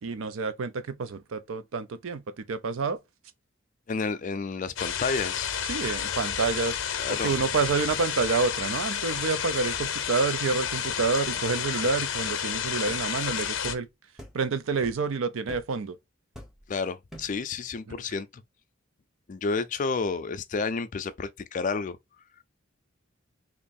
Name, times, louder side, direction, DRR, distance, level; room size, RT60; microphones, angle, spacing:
voice 1, 0.0-3.0 5.6-6.8 7.1-13.9 14.3-16.0 17.9-18.0, right 4 dB, 80° right, 0.5 m, -28 dB
voice 2, 3.9-5.5 7.0-7.3 16.7-18.3 19.3-22.0, left 4 dB, 40° left, 0.4 m, -30 dB
sound 1, 4.8-13.7, left 8 dB, 80° left, 0.6 m, -31 dB
sound 2, 11.8-12.0 12.9-13.1 13.6-13.8 14.2-14.4 14.8-15.1 15.5-15.7 16.3-16.7 17.1-17.4, equal, 5° right, 0.8 m, -45 dB
3.0 x 2.7 x 4.0 m
head